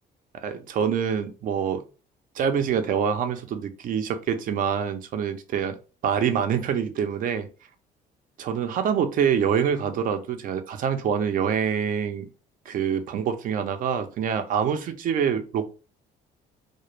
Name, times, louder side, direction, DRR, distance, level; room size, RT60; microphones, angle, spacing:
voice 1, 0.3-1.8 2.4-5.8 6.0-7.5 8.4-12.3 12.7-15.7, right 7 dB, 55° right, 8 dB, 0.5 m, -25 dB
2.1 x 2.0 x 3.0 m, 0.34 s
cardioid pair, 110°, 17 cm